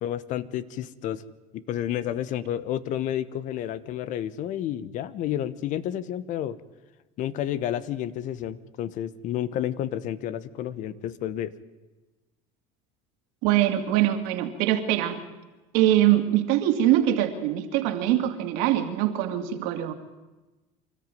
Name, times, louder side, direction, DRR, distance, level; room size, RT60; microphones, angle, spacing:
voice 1, 0.0-1.2 1.5-6.6 7.2-11.5, left 11 dB, 60° left, 17 dB, 1.2 m, -30 dB
voice 2, 13.4-15.2 15.7-19.9, right 12 dB, 75° right, 6 dB, 2.6 m, -23 dB
26.0 x 14.0 x 9.4 m, 1.1 s
supercardioid pair, 105°, 15 cm